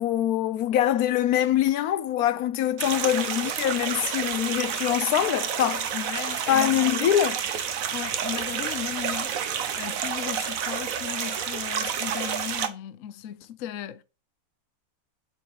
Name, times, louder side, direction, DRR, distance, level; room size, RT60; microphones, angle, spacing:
voice 1, 0.0-5.9 6.5-7.4, left 11 dB, 90° left, 1.2 m, -24 dB
sound 1, 2.8-12.7, right 8 dB, 70° right, 1.2 m, -29 dB
voice 2, 5.9-6.8 7.9-14.0, left 11 dB, 65° left, 1.0 m, -36 dB
7.9 x 4.5 x 4.8 m
omnidirectional pair, 1.5 m